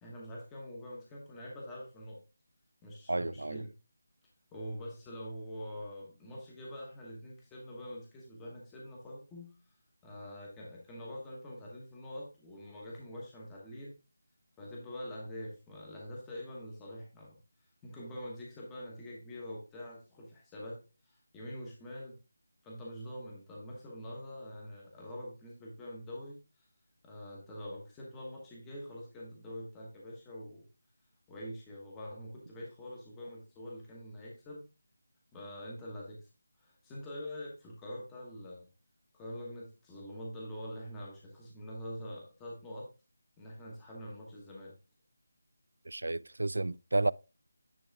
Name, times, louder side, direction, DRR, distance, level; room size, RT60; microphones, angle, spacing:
voice 1, 0.0-2.2 2.8-3.7 4.5-9.5 10.0-13.9 14.6-17.4 17.8-22.2 22.6-26.4 27.0-30.7 31.3-34.6 35.3-36.3 36.6-38.7 39.1-42.9 43.4-44.7, equal, 10° left, 1.1 m, -45 dB
voice 2, 3.1-3.6 45.9-47.1, right 2 dB, 90° right, 0.3 m, -31 dB
10.0 x 3.5 x 3.5 m
figure-of-eight pair, 175°, 0 cm